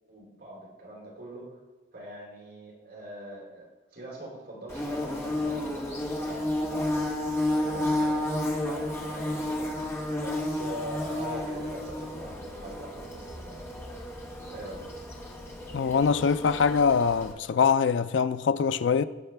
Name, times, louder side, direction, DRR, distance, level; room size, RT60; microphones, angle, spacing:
voice 1, 0.1-1.6 1.9-3.7 3.9-7.1 7.5-9.8 10.2-13.7 14.4-14.8, right 1 dB, 55° right, 4.0 m, -43 dB
Bird / Buzz, 4.7-17.3, left 1 dB, 15° left, 1.7 m, -32 dB
voice 2, 15.7-19.0, left 6 dB, 70° left, 0.4 m, -23 dB
18.5 x 6.5 x 3.4 m
head